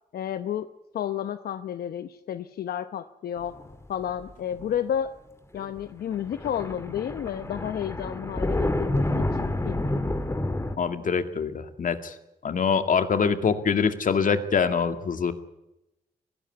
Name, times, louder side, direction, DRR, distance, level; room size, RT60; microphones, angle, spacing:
voice 1, 0.1-0.7 0.9-3.5 3.9-5.1 5.5-10.0, left 9 dB, 85° left, 11 dB, 0.9 m, -31 dB
sound 1, 3.4-4.0 4.3-4.7 5.6-5.8 6.1-10.8, left 1 dB, 15° left, 2.4 m, -29 dB
voice 2, 10.8-12.1 12.4-15.3, left 6 dB, 60° left, 9 dB, 2.2 m, -24 dB
21.0 x 16.0 x 9.6 m, 0.91 s
cardioid pair, 75°, 15 cm